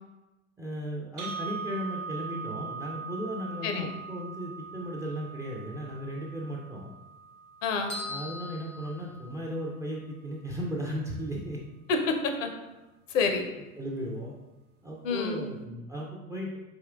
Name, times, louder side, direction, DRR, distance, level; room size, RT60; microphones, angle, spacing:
voice 1, 0.6-6.9 8.1-11.6 13.8-14.4 14.8-16.6, equal, 10° right, -2 dB, 0.3 m, -36 dB
sound 1, 1.2-9.2, right 5 dB, 85° right, 0.7 m, -41 dB
voice 2, 7.6-8.0 11.9-12.5 13.1-13.4 15.0-15.5, left 4 dB, 65° left, 5 dB, 0.7 m, -28 dB
sound 2, 7.9-9.7, left 2 dB, 85° left, 1.5 m, -40 dB
4.1 x 3.6 x 2.4 m, 1.1 s
figure-of-eight pair, 75°, 43 cm